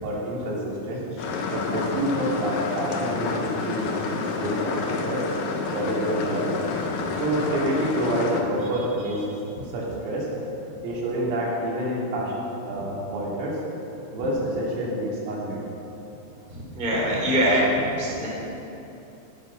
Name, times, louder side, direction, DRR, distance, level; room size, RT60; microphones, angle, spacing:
voice 1, 0.0-1.0 1.5-5.3 5.7-6.6 7.2-9.3 9.7-10.3 10.8-13.6 14.1-15.6, right 1 dB, 85° right, -5 dB, 5.7 m, -28 dB
sound 1, 1.2-8.4, left 4 dB, 85° left, 1.9 m, -29 dB
voice 2, 16.8-17.6 18.0-18.3, equal, 10° right, -5 dB, 2.9 m, -22 dB
18.5 x 10.5 x 6.0 m, 2.9 s
omnidirectional pair, 5.8 m